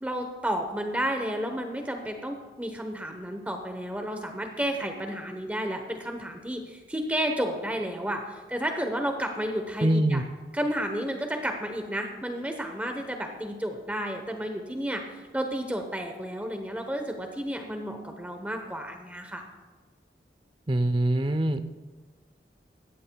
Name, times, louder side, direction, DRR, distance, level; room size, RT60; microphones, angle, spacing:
voice 1, 0.0-10.2 10.5-19.4, equal, 10° right, 4 dB, 0.9 m, -32 dB
voice 2, 9.8-10.2 20.7-21.6, right 1 dB, 30° right, 10 dB, 0.6 m, -23 dB
17.0 x 14.5 x 2.3 m, 1.3 s
head